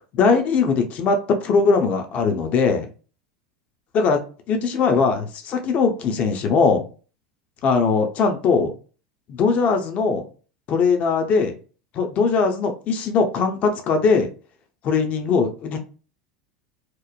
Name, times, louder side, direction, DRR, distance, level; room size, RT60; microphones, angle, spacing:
voice 1, 0.1-2.9 3.9-4.2 4.5-6.8 7.6-8.7 9.3-10.2 10.7-11.5 11.9-14.3 14.8-15.8, left 4 dB, 40° left, 5 dB, 0.5 m, -20 dB
2.9 x 2.1 x 2.3 m, 0.37 s
hypercardioid pair, 85°, 4 cm